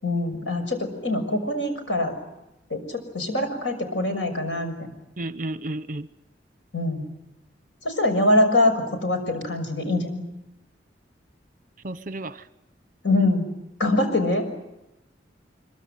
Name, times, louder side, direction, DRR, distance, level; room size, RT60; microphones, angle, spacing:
voice 1, 0.0-2.1 2.7-4.9 6.7-7.1 7.8-10.2 13.0-13.4 13.8-14.5, left 1 dB, 90° left, 6.3 m, -24 dB
voice 2, 5.2-6.1 11.8-12.4, right 2 dB, 45° right, 1.0 m, -32 dB
25.5 x 24.0 x 9.4 m
head